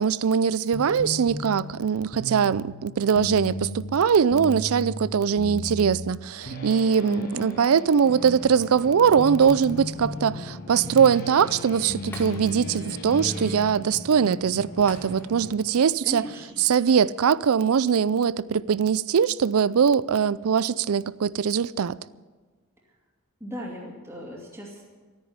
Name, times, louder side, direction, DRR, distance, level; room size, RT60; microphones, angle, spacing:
voice 1, 0.0-16.2 16.6-22.0, right 7 dB, 80° right, 0.4 m, -22 dB
sound 1, 0.7-13.6, left 1 dB, 40° left, 2.1 m, -36 dB
voice 2, 7.0-7.6 16.0-16.6 23.4-24.8, equal, 10° right, 2.6 m, -36 dB
sound 2, 8.0-15.5, left 1 dB, 60° left, 3.8 m, -40 dB
Shatter, 9.4-10.1 10.5-10.6 12.1-12.9 13.2-13.4 14.9-15.6 15.9-16.1, left 1 dB, 10° left, 2.1 m, -47 dB
13.5 x 9.8 x 9.6 m
head